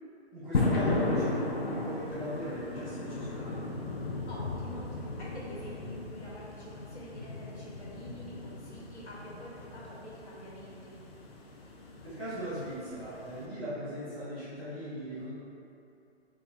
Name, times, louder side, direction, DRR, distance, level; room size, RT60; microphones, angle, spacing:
voice 1, 0.3-3.6 12.0-15.3, equal, 10° right, -13 dB, 0.7 m, -38 dB
sound 1, 0.5-13.5, left 2 dB, 60° left, 0.6 m, -36 dB
voice 2, 4.2-11.0, equal, 80° left, -7 dB, 1.4 m, -47 dB
4.1 x 2.4 x 3.4 m, 2.7 s
hypercardioid pair, 165°, 33 cm